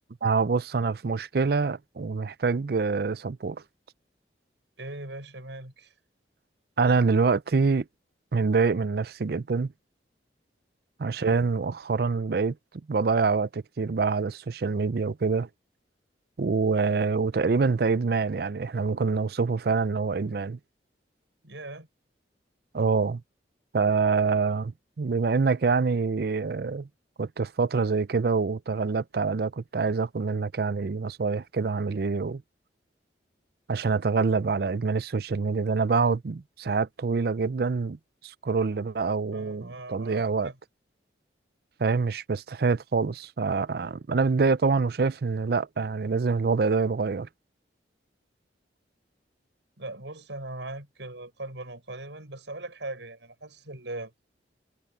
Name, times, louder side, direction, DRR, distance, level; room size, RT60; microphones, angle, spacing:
voice 1, 0.2-3.6 6.8-7.8 8.3-9.7 11.0-12.6 12.9-15.5 16.4-20.6 22.7-23.2 23.7-26.9 27.2-32.4 33.7-38.0 38.2-40.5 41.8-47.3, right 4 dB, 55° right, 0.5 m, -26 dB
voice 2, 4.8-5.9 21.4-21.9 39.3-40.6 49.8-54.1, right 2 dB, 80° right, 6.1 m, -39 dB
head